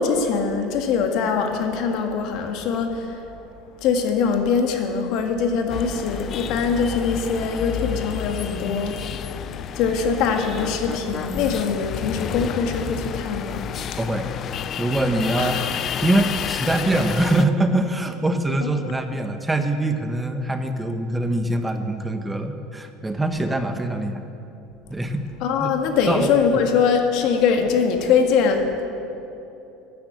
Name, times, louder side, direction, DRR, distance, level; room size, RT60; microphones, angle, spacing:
voice 1, 0.0-3.3 3.8-14.0 15.4-15.8 18.6-19.0 25.4-28.8, left 5 dB, 65° left, 4 dB, 1.7 m, -23 dB
sound 1, 5.7-17.5, left 9 dB, 45° left, 0.5 m, -31 dB
voice 2, 14.0-14.3 14.8-15.6 16.0-24.2 24.9-25.2 25.6-25.7 26.1-26.3, right 1 dB, 10° right, 7 dB, 1.0 m, -23 dB
13.0 x 10.5 x 7.8 m, 2.9 s
supercardioid pair, 100°, 0 cm